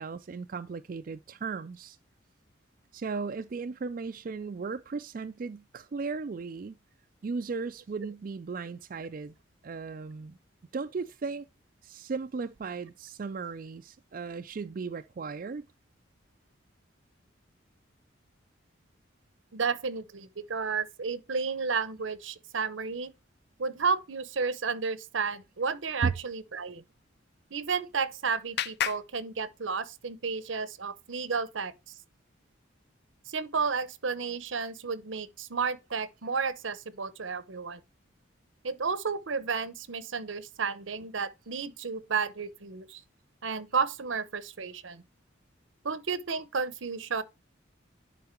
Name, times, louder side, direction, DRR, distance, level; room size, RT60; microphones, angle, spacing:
voice 1, 0.0-2.0 2.9-6.8 7.2-9.4 9.6-10.4 10.7-11.5 11.8-15.6 26.0-26.1, right 4 dB, 45° right, 0.4 m, -36 dB
voice 2, 19.5-23.1 23.6-26.8 27.5-31.7 33.3-37.8 38.6-43.0 43.4-45.0 45.8-47.2, right 5 dB, 75° right, 0.8 m, -32 dB
Clapping, 27.4-30.1, left 9 dB, 55° left, 0.4 m, -37 dB
10.5 x 3.9 x 4.4 m
head